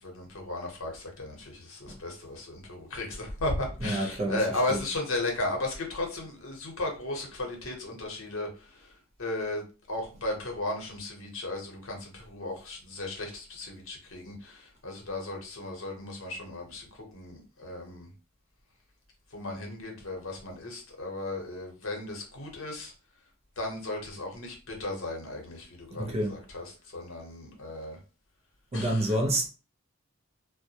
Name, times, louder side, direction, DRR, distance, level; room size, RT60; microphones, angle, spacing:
voice 1, 0.0-9.6 9.9-18.1 19.3-22.9 23.6-28.0 28.7-29.2, left 2 dB, 65° left, 0.8 m, -35 dB
voice 2, 3.8-4.4 4.7-4.8 25.9-26.3 28.7-29.5, right 1 dB, 30° right, 0.5 m, -28 dB
2.2 x 2.1 x 2.7 m
head